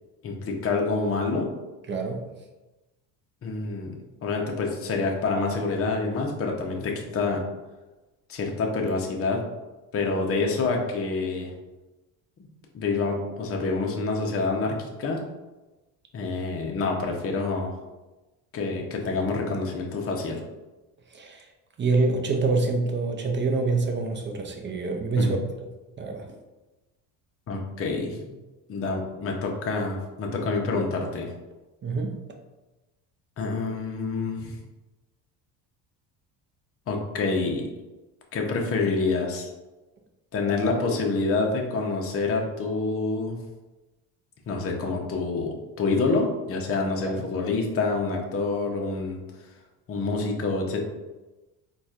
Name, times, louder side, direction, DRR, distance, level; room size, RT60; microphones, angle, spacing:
voice 1, 0.2-1.5 3.4-4.0 4.2-7.4 8.3-9.4 9.9-11.5 12.4-12.5 12.7-15.2 16.1-17.7 18.5-20.4 25.2-25.3 27.5-28.3 28.7-31.3 33.4-34.6 36.9-37.7 38.3-39.5 40.3-43.4 44.5-49.2 49.9-50.9, left 3 dB, 35° left, 1 dB, 0.7 m, -27 dB
voice 2, 1.9-2.3 21.1-21.5 21.8-25.4 26.0-26.3 31.8-32.2 47.0-47.2, right 3 dB, 30° right, 2 dB, 0.5 m, -26 dB
4.0 x 2.3 x 2.4 m, 1.1 s
supercardioid pair, 85°, 42 cm